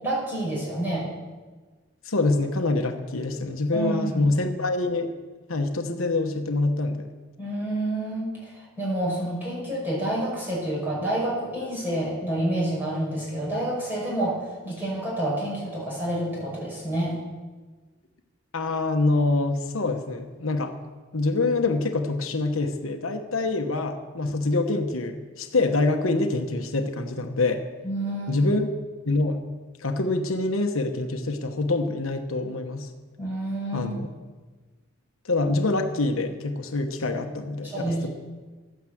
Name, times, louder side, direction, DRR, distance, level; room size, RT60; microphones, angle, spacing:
voice 1, 0.0-1.1 3.7-4.3 7.4-17.1 27.8-28.5 33.2-33.9 37.6-38.1, right 1 dB, 10° right, -5 dB, 5.4 m, -28 dB
voice 2, 2.0-5.1 5.5-7.1 18.5-20.7 21.1-27.6 28.3-28.7 29.1-29.4 29.8-32.9 33.7-34.1 35.2-38.1, left 2 dB, 80° left, 6 dB, 1.1 m, -25 dB
12.5 x 9.4 x 7.8 m, 1.3 s
head